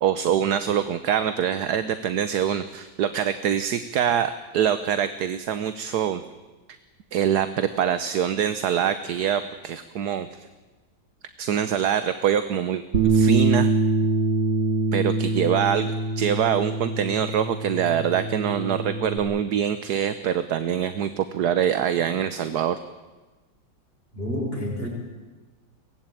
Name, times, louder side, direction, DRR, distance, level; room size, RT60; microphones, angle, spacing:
voice 1, 0.0-6.2 7.1-10.3 11.4-13.7 14.9-22.8, right 9 dB, 65° right, 12 dB, 1.4 m, -24 dB
Bass guitar, 12.9-19.2, right 3 dB, 90° right, 3.5 m, -24 dB
voice 2, 24.1-24.9, equal, 30° left, -1 dB, 5.5 m, -29 dB
23.0 x 19.0 x 9.1 m, 1.2 s
omnidirectional pair, 2.0 m